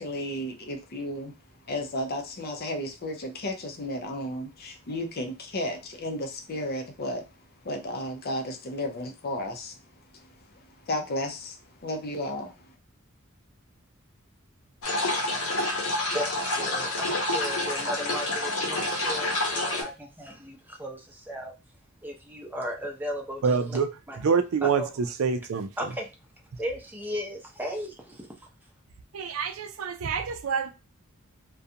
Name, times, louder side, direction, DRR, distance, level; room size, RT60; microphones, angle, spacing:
voice 1, 0.0-1.3 1.7-7.3 7.6-9.8 10.9-11.6 11.8-12.5, left 1 dB, 50° left, 0.6 m, -33 dB
sound 1, 14.8-19.8, left 2 dB, 85° left, 0.9 m, -28 dB
voice 2, 15.4-21.5 22.0-23.8 24.1-24.2 24.6-24.9 25.8-26.1 26.6-28.5, equal, 10° right, 0.6 m, -36 dB
voice 3, 23.4-23.9 24.2-24.8 25.2-25.7 29.1-30.7, right 6 dB, 75° right, 0.4 m, -26 dB
2.4 x 2.2 x 2.7 m
head